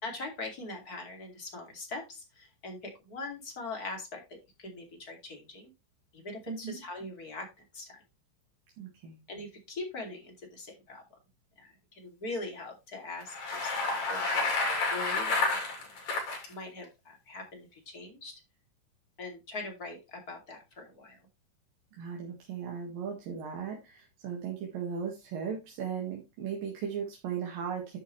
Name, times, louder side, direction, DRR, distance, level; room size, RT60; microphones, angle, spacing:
voice 1, 0.0-4.2 4.6-5.7 6.1-8.0 9.3-11.0 11.6-15.6 16.5-18.3 19.2-21.3, left 2 dB, 30° left, 2 dB, 2.7 m, -42 dB
voice 2, 6.5-6.8 8.8-9.2 22.0-28.0, right 7 dB, 90° right, -1 dB, 3.5 m, -37 dB
Bicycle, 13.2-16.5, left 3 dB, 85° left, 4.7 m, -30 dB
11.0 x 6.7 x 3.2 m, 0.25 s
omnidirectional pair, 3.8 m